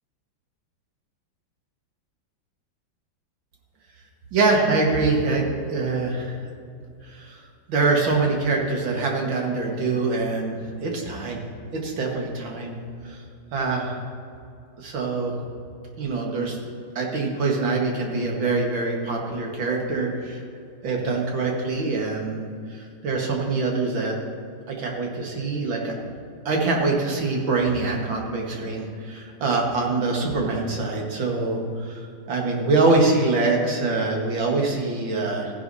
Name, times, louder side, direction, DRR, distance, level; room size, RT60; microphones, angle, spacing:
voice 1, 4.3-6.4 7.1-7.4 7.7-11.4 11.7-12.8 13.0-13.2 13.5-14.0 14.8-15.3 16.0-16.6 17.0-20.4 20.8-24.2 24.7-25.9 26.5-35.5, right 3 dB, 80° right, -1 dB, 2.4 m, -24 dB
15.0 x 11.0 x 2.8 m, 2.5 s
omnidirectional pair, 2.1 m